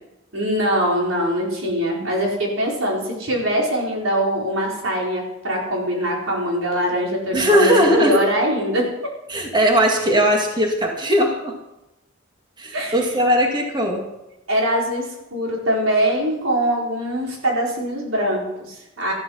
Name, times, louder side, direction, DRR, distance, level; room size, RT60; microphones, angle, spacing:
voice 1, 0.3-7.7 8.0-8.9 12.7-13.0 14.5-19.1, equal, 80° right, -2 dB, 4.7 m, -22 dB
voice 2, 7.3-8.2 9.3-11.5 12.6-14.1, equal, 25° right, 2 dB, 2.2 m, -18 dB
14.0 x 12.5 x 5.6 m, 0.92 s
head